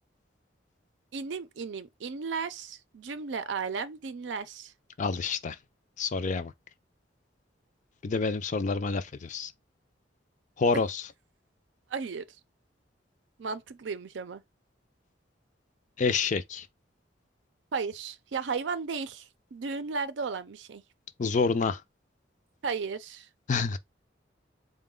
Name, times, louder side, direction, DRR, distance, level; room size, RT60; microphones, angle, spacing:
voice 1, 1.1-4.7 11.9-12.2 13.4-14.4 17.7-20.8 22.6-23.3, right 5 dB, 75° right, 0.5 m, -34 dB
voice 2, 5.0-5.6 6.0-6.5 8.0-9.5 10.6-11.0 16.0-16.7 21.2-21.8 23.5-23.8, left 4 dB, 40° left, 0.4 m, -28 dB
4.0 x 2.2 x 3.6 m
head